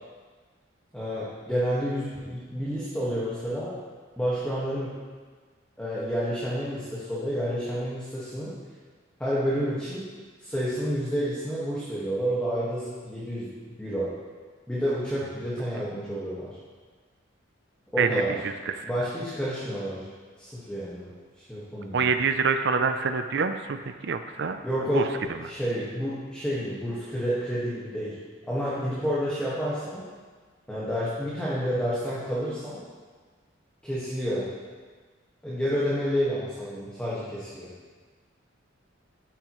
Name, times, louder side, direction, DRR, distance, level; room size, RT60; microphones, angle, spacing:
voice 1, 0.9-3.8 4.2-5.0 5.8-8.5 9.2-10.1 10.4-13.5 13.8-14.1 14.7-16.6 17.9-18.4 18.8-20.0 20.4-22.0 24.6-28.2 28.5-30.0 30.7-32.9 33.8-34.5 35.4-37.7, equal, 5° left, -9 dB, 1.6 m, -29 dB
voice 2, 21.9-23.8 24.0-24.6 24.9-25.0, right 5 dB, 55° right, 8 dB, 0.5 m, -25 dB
12.5 x 9.0 x 3.1 m, 1.5 s
head